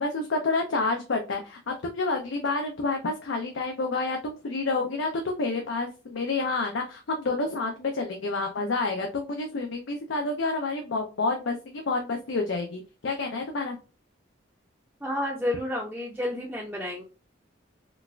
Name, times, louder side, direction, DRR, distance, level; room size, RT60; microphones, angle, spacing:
voice 1, 0.0-13.8, left 3 dB, 75° left, 3 dB, 0.5 m, -29 dB
voice 2, 15.0-17.0, left 1 dB, 5° right, -3 dB, 0.5 m, -30 dB
3.9 x 2.4 x 2.2 m, 0.33 s
head